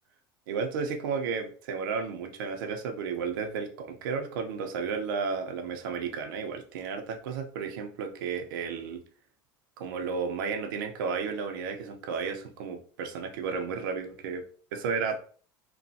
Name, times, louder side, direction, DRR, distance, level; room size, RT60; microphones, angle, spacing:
voice 1, 0.5-9.0 9.8-14.4 14.7-15.2, right 5 dB, 85° right, 5 dB, 0.6 m, -33 dB
3.0 x 2.2 x 2.7 m, 0.43 s
supercardioid pair, 115°, 11 cm